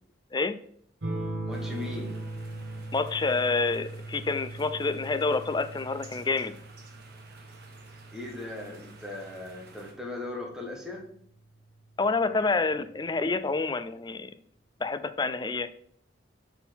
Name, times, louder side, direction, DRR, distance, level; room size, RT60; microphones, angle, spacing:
sound 1, 1.0-10.1 11.5-12.1, right 2 dB, 75° right, 1.5 m, -40 dB
voice 1, 1.4-2.2 8.1-11.1, left 2 dB, 5° right, -1 dB, 1.2 m, -38 dB
sound 2, 1.5-9.9, right 3 dB, 55° right, 1.3 m, -53 dB
voice 2, 2.9-6.6 12.0-14.3 14.8-15.7, left 3 dB, 25° left, 12 dB, 0.4 m, -28 dB
5.9 x 4.0 x 5.8 m, 0.64 s
head